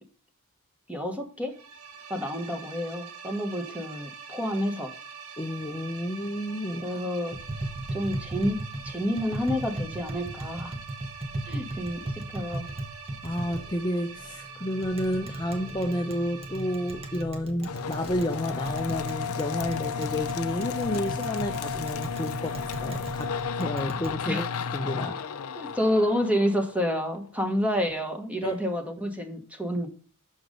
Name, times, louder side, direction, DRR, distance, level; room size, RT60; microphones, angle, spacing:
voice 1, 0.9-1.6 2.1-4.9 6.8-7.4 7.9-8.6 8.8-10.7 11.5-12.7 24.2-24.4 25.5-29.9, equal, 5° right, 1.3 m, -29 dB
sound 1, 1.5-17.2, right 5 dB, 70° right, 1.2 m, -44 dB
voice 2, 5.4-6.8 13.2-24.5 24.7-25.2 28.4-28.6, left 1 dB, 20° left, 0.6 m, -31 dB
Tap, 7.3-24.1, right 1 dB, 25° right, 1.2 m, -38 dB
sound 2, 17.6-27.2, left 6 dB, 80° left, 0.5 m, -33 dB
6.5 x 4.6 x 5.1 m
head